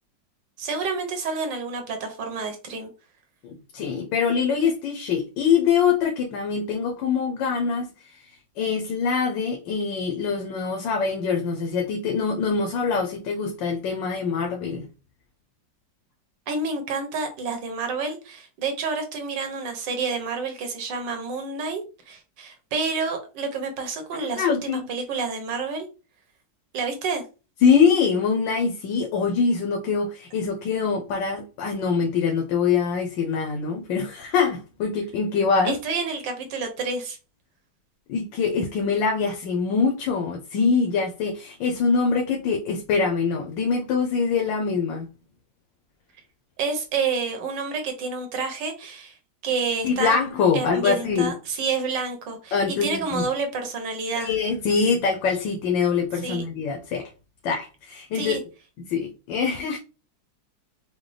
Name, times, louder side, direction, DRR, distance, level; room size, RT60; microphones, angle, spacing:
voice 1, 0.6-2.9 16.5-21.8 22.1-25.9 26.7-27.2 35.6-37.2 46.6-49.1 49.4-50.2 50.5-54.3 56.2-56.4 58.1-58.4, right 4 dB, 80° right, 1.7 m, -29 dB
voice 2, 3.4-14.9 24.1-24.9 27.6-35.7 38.1-45.1 49.8-51.3 52.5-53.2 54.2-57.1 57.4-58.4 58.9-59.8, left 5 dB, 90° left, 1.4 m, -24 dB
4.9 x 2.2 x 3.3 m
omnidirectional pair, 1.9 m